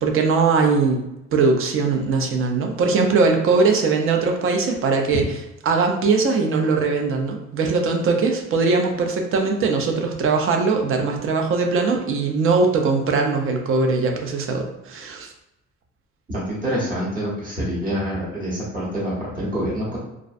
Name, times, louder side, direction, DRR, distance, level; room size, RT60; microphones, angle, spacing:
voice 1, 0.0-1.0 1.3-5.4 5.6-15.3, right 4 dB, 50° right, 3 dB, 0.4 m, -20 dB
voice 2, 16.3-20.0, equal, 30° right, -6 dB, 0.9 m, -26 dB
2.4 x 2.0 x 2.5 m, 0.89 s
cardioid pair, 155°, 29 cm